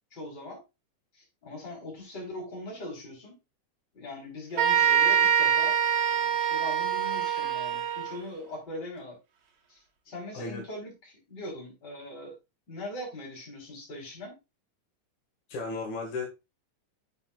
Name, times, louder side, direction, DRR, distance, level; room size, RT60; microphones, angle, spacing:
voice 1, 0.1-0.6 1.1-3.4 3.9-5.8 6.1-9.2 9.7-12.4 12.7-14.4, left 1 dB, 35° left, 4.5 m, -41 dB
sound 1, 4.6-8.2, right 9 dB, 70° right, 2.7 m, -24 dB
voice 2, 10.3-10.6 15.5-16.3, left 3 dB, 80° left, 3.2 m, -34 dB
8.9 x 6.4 x 2.4 m
omnidirectional pair, 3.3 m